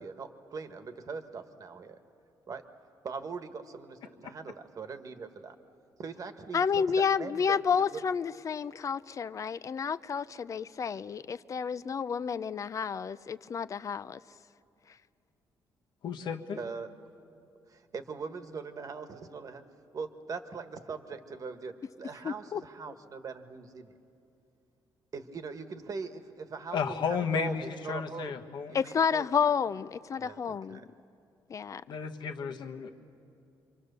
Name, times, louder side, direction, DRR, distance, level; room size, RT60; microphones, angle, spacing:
voice 1, 0.0-2.0 2.5-2.6 3.0-5.6 6.0-8.0 16.6-16.9 17.7-19.6 19.9-24.0 25.1-27.6 27.8-28.3 28.7-29.3 30.2-30.9, right 5 dB, 45° right, 8 dB, 1.4 m, -41 dB
voice 2, 6.5-14.2 22.2-22.6 28.7-30.9 31.5-31.8, left 6 dB, 40° left, 15 dB, 0.5 m, -30 dB
voice 3, 16.0-16.6 26.7-28.8 31.9-32.9, left 6 dB, 65° left, 4 dB, 1.4 m, -33 dB
28.0 x 23.5 x 6.8 m, 2.6 s
cardioid pair, 105°, 8 cm